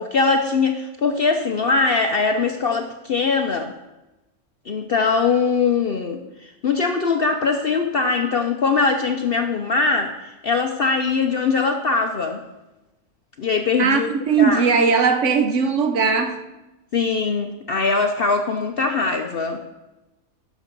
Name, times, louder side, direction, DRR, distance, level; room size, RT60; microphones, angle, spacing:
voice 1, 0.0-3.7 4.7-12.4 13.4-14.1 14.4-14.6 16.9-19.6, left 4 dB, 55° left, 5 dB, 0.6 m, -21 dB
voice 2, 13.8-16.4, right 5 dB, 60° right, 7 dB, 1.1 m, -19 dB
12.0 x 6.2 x 5.2 m, 1.0 s
omnidirectional pair, 1.6 m